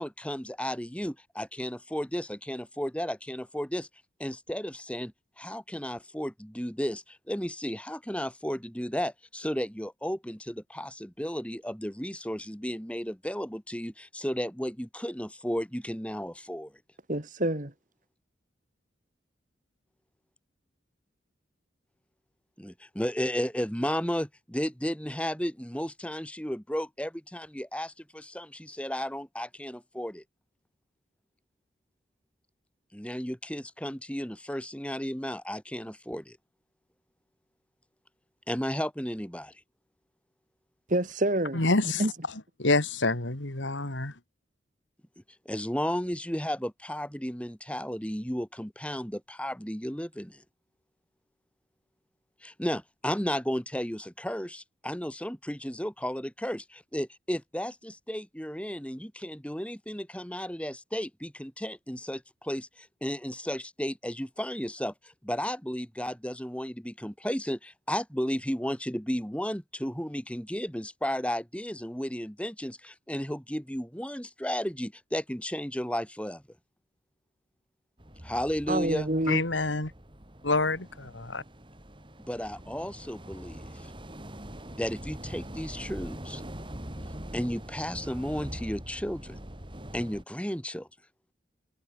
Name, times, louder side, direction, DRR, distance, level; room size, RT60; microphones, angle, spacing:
voice 1, 0.0-3.9 4.2-16.7 22.6-30.2 32.9-36.4 38.5-39.5 45.5-50.4 52.4-76.4 78.2-79.1 82.3-83.9 84.7-86.4 87.3-89.4 89.9-90.9, equal, 5° left, 3.6 m, -34 dB
voice 2, 17.1-17.7 40.9-42.1 78.7-79.4, right 1 dB, 45° right, 2.4 m, -28 dB
voice 3, 41.5-42.1 42.6-44.1 79.3-79.9 80.4-81.4, left 2 dB, 90° left, 3.1 m, -27 dB
sound 1, 78.0-90.2, equal, 25° right, 4.5 m, -43 dB
head